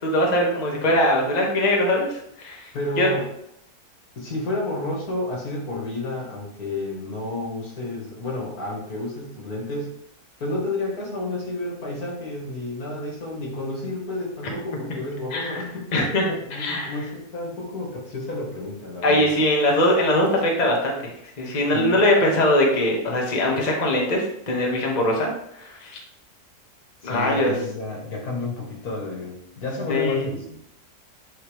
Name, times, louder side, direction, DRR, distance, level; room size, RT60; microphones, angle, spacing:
voice 1, 0.0-2.7 3.0-3.1 15.3-15.6 15.9-16.2 16.5-17.0 19.0-21.0 21.4-25.3 25.6-25.9 27.0-27.5 29.9-30.3, left 1 dB, 30° left, -1 dB, 1.1 m, -21 dB
voice 2, 2.7-3.3 4.2-9.9 10.4-15.9 16.3-19.3 21.7-22.0 27.0-30.6, left 2 dB, 75° left, -2 dB, 2.2 m, -31 dB
9.1 x 3.1 x 3.4 m, 0.77 s
omnidirectional pair, 1.6 m